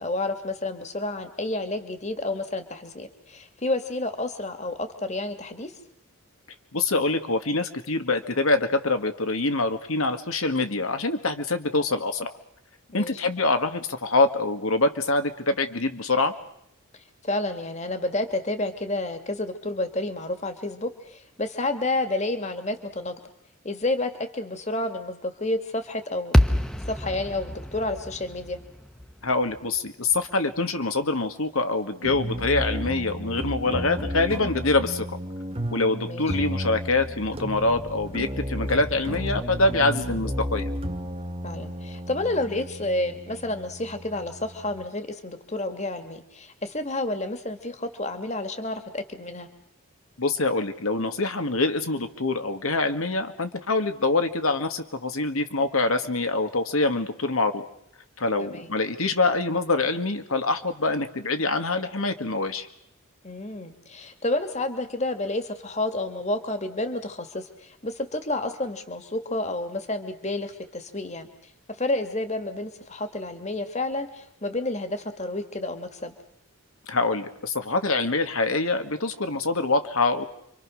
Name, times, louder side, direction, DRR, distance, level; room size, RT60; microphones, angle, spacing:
voice 1, 0.0-5.7 12.9-13.2 17.2-23.2 23.6-26.4 26.9-28.6 36.0-36.4 41.4-49.5 58.4-58.7 63.2-71.3 71.7-76.1, left 2 dB, 30° left, 8 dB, 2.2 m, -30 dB
voice 2, 6.7-12.3 12.9-16.3 29.2-35.2 35.7-40.7 50.2-57.7 58.2-62.7 76.9-80.3, left 3 dB, 75° left, 7 dB, 1.8 m, -25 dB
sound 1, 26.3-30.6, equal, 5° left, 1.0 m, -27 dB
sound 2, 32.0-44.9, equal, 25° right, 1.7 m, -33 dB
29.5 x 25.0 x 6.4 m, 0.73 s
head